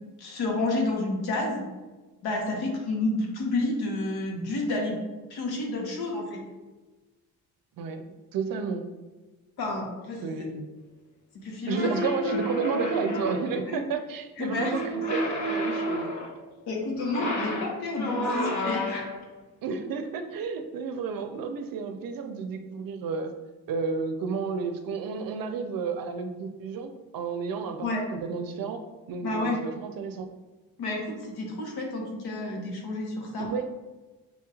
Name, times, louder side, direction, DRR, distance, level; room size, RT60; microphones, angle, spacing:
voice 1, 0.2-1.6 2.2-5.0 5.3-6.4 9.6-10.3 11.4-11.9 13.7-13.8 14.4-14.7 16.7-19.1 27.8-28.1 29.2-29.6 30.8-33.5, left 2 dB, 80° left, 0 dB, 1.1 m, -30 dB
voice 2, 7.8-8.9 10.2-10.7 11.7-16.1 19.6-23.3 23.7-28.8 29.1-30.3 33.4-33.7, right 5 dB, 65° right, 7 dB, 0.6 m, -32 dB
sound 1, 11.7-13.6 14.6-16.4 17.0-19.3, equal, 50° left, 0.9 m, -30 dB
5.4 x 3.0 x 2.3 m, 1.2 s
cardioid pair, 75°, 38 cm